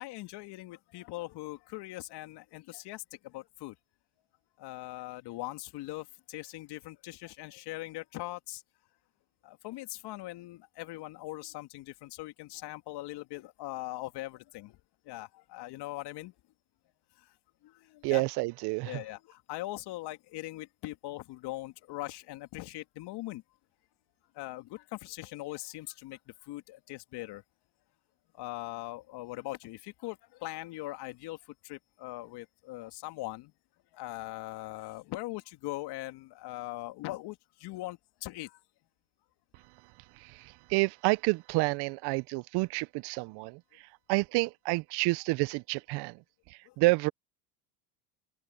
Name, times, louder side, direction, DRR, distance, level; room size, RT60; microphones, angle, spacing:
voice 1, 0.0-3.8 4.6-8.6 9.4-14.8 15.0-16.3 17.2-17.4 17.6-18.2 18.8-23.4 24.3-27.4 28.3-33.5 33.9-38.6 46.6-46.8, left 18 dB, 55° left, 2.7 m, -41 dB
voice 2, 18.0-19.0 40.2-43.6 44.1-46.2 46.5-47.1, right 24 dB, 55° right, 0.8 m, -29 dB
open air
hypercardioid pair, 90°, 47 cm